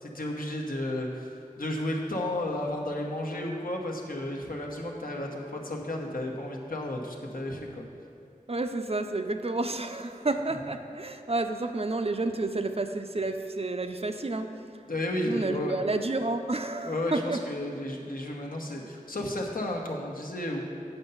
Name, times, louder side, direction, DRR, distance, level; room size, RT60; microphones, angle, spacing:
voice 1, 0.0-7.8 14.9-15.8 16.8-20.6, left 1 dB, 80° left, -1 dB, 1.0 m, -33 dB
voice 2, 8.5-14.5 15.3-17.4, right 2 dB, 45° right, 7 dB, 0.5 m, -30 dB
8.0 x 5.6 x 5.5 m, 2.5 s
wide cardioid pair, 45°, 14 cm